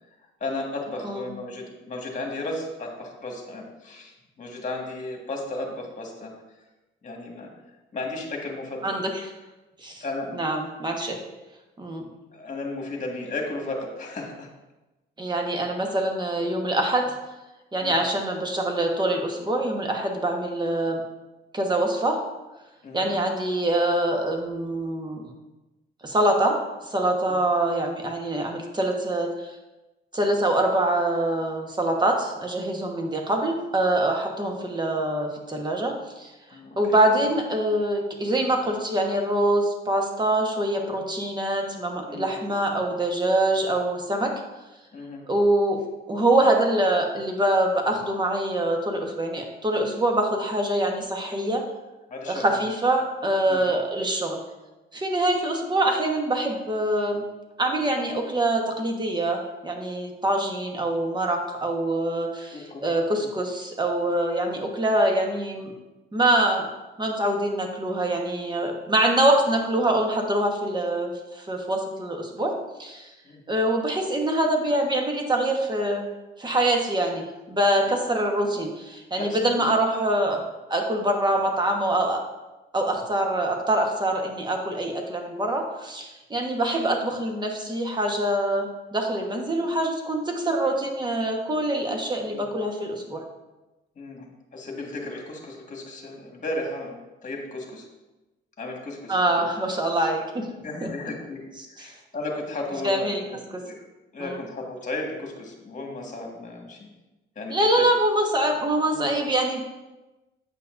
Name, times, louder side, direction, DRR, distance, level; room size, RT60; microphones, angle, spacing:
voice 1, 0.4-6.3 7.0-7.5 7.9-9.0 10.0-10.3 12.3-14.5 17.8-18.0 22.8-23.1 27.3-27.4 36.5-37.0 41.0-41.1 42.1-42.3 44.9-45.3 52.1-52.7 53.5-53.6 62.5-62.9 73.3-73.4 77.8-78.0 79.2-79.7 80.2-80.3 92.3-92.5 94.0-97.9 98.6-99.5 100.5-103.8 104.1-106.9 107.4-107.9 108.9-109.1, left 2 dB, 40° left, 0 dB, 1.7 m, -35 dB
voice 2, 10.3-11.2 11.8-12.0 15.2-17.1 17.7-21.0 21.5-22.2 22.9-25.2 26.0-26.6 26.9-29.3 30.1-36.3 36.8-44.3 45.3-45.8 46.1-51.6 52.3-54.4 54.9-57.2 57.6-65.7 66.1-66.7 67.0-73.1 73.5-76.1 76.4-80.4 80.7-82.2 82.7-93.2 99.1-100.4 100.8-100.9 101.8-101.9 102.8-103.2 103.5-103.6 104.2-104.4 107.5-109.6, right 1 dB, 20° right, 2 dB, 1.2 m, -24 dB
8.9 x 5.6 x 2.6 m, 1.1 s
cardioid pair, 90°, 20 cm